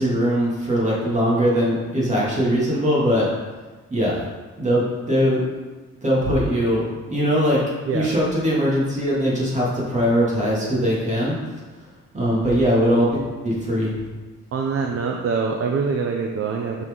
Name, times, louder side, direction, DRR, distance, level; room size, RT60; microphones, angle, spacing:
voice 1, 0.0-3.3 3.9-4.2 4.6-5.6 6.0-7.6 7.9-11.4 12.1-14.0, equal, 25° right, -6 dB, 2.2 m, -21 dB
voice 2, 14.5-16.9, right 5 dB, 50° right, 2 dB, 0.6 m, -24 dB
6.1 x 5.9 x 3.7 m, 1.3 s
wide cardioid pair, 140°, 30 cm